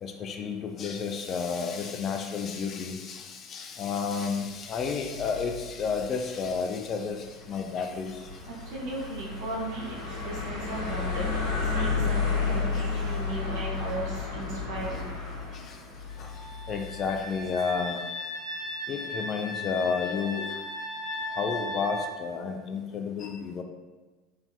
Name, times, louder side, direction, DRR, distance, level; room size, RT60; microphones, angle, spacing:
voice 1, 0.0-8.2 15.7-15.8 16.2-16.3 16.7-18.0 18.9-20.5 21.3-23.6, left 5 dB, 40° left, 4 dB, 0.3 m, -31 dB
sound 1, 5.0-17.2, left 4 dB, 75° left, 1.0 m, -32 dB
voice 2, 8.5-15.1, right 2 dB, 60° right, -3 dB, 0.8 m, -36 dB
sound 2, 16.1-22.1, left 1 dB, 15° left, 0.7 m, -36 dB
3.1 x 2.7 x 2.3 m, 1.2 s
figure-of-eight pair, 70°, 0 cm